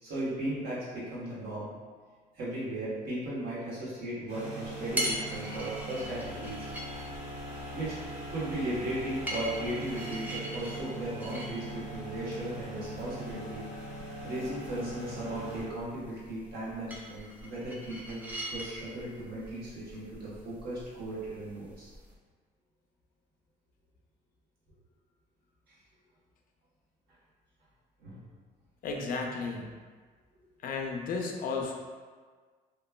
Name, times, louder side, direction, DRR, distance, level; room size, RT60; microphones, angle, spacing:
voice 1, 0.0-1.7 2.4-6.7 7.7-7.9 8.3-13.6 14.2-18.2 18.5-21.9 28.0-28.2, right 1 dB, 70° right, -9 dB, 1.2 m, -36 dB
sound 1, 4.3-15.6, right 1 dB, 90° right, 1.2 m, -41 dB
sound 2, 4.6-22.1, equal, 10° right, 0.4 m, -42 dB
voice 2, 28.8-29.7 30.6-31.7, left 4 dB, 55° left, 1 dB, 0.4 m, -34 dB
2.9 x 2.2 x 2.2 m, 1.5 s
cardioid pair, 110°, 17 cm